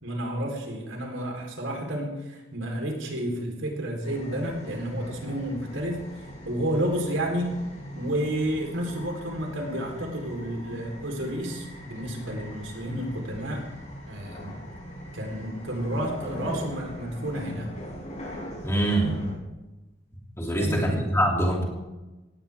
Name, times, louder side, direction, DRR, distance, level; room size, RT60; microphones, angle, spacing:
voice 1, 0.0-6.0 6.4-7.5 8.0-13.6 14.1-14.6 15.1-17.7 20.5-20.8, right 1 dB, 75° right, 1 dB, 3.9 m, -31 dB
sound 1, 4.0-19.3, equal, 35° left, 5.9 m, -41 dB
voice 2, 18.6-19.1 20.4-21.6, right 1 dB, 15° left, -1 dB, 2.9 m, -24 dB
18.0 x 16.5 x 3.6 m, 1.1 s
head